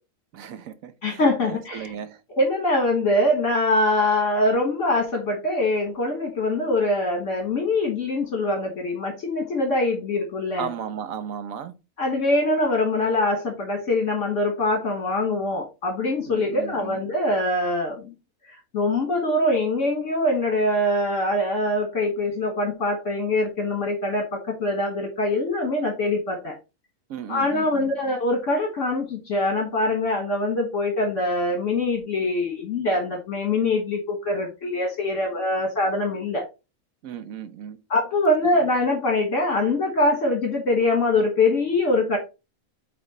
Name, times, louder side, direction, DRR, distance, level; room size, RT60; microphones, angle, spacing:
voice 1, 0.3-2.2 10.6-11.7 16.3-17.0 27.1-27.9 37.0-37.8, right 8 dB, 80° right, 1.2 m, -35 dB
voice 2, 1.0-1.9 2.3-10.7 12.0-18.1 18.5-26.5 27.3-36.5 37.9-42.2, left 2 dB, 65° left, 1.7 m, -23 dB
8.5 x 3.0 x 4.1 m
omnidirectional pair, 1.4 m